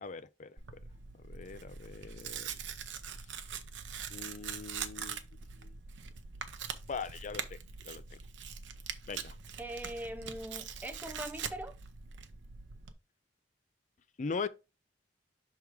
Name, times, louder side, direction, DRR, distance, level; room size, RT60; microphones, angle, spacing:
voice 1, 0.0-0.8 1.1-2.5 4.1-5.2 5.6-5.7 6.9-7.6 7.8-8.2 9.1-9.4 14.2-14.5, left 4 dB, 45° left, 0.4 m, -41 dB
Tearing, 0.6-12.9, right 7 dB, 85° right, 0.7 m, -43 dB
voice 2, 9.6-11.8, right 1 dB, 10° right, 0.7 m, -41 dB
6.0 x 3.7 x 4.6 m
head